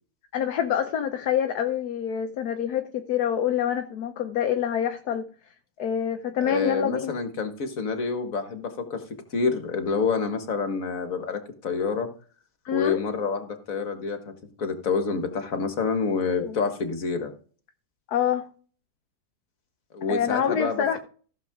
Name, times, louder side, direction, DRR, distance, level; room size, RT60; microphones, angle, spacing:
voice 1, 0.3-5.2 5.8-7.2 12.6-13.0 16.3-16.6 18.1-18.5 20.1-21.0, left 9 dB, 70° left, 6 dB, 1.4 m, -26 dB
voice 2, 6.4-9.0 9.3-12.1 12.7-14.3 14.6-17.3 19.9-21.0, left 5 dB, 55° left, 6 dB, 2.0 m, -28 dB
15.0 x 7.2 x 3.6 m, 0.41 s
omnidirectional pair, 1.7 m